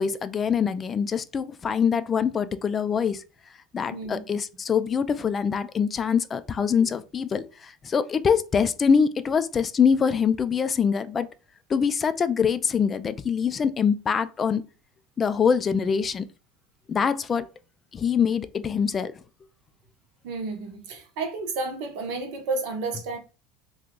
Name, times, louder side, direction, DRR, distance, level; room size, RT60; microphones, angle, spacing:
voice 1, 0.0-3.2 3.7-11.3 11.7-14.6 15.2-16.3 16.9-17.5 17.9-19.1, left 6 dB, 30° left, 0.3 m, -24 dB
voice 2, 3.9-4.4 20.2-23.2, right 3 dB, 70° right, 0.8 m, -31 dB
2.7 x 2.4 x 3.6 m
hypercardioid pair, 90°, 0 cm